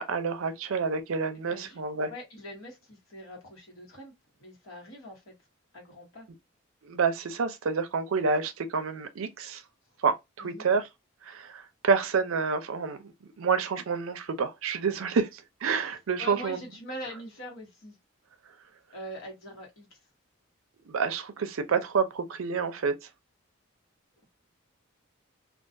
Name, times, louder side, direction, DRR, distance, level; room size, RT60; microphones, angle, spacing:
voice 1, 0.0-2.1 6.9-9.6 10.0-10.8 11.2-13.1 13.4-16.6 20.9-22.9, right 5 dB, 70° right, 0.5 m, -28 dB
voice 2, 1.5-1.8 2.1-4.1 4.4-5.3 5.7-6.3 10.4-10.7 16.2-18.0 18.9-20.0 21.6-21.8, equal, 70° left, 1.2 m, -43 dB
2.3 x 2.3 x 2.6 m
head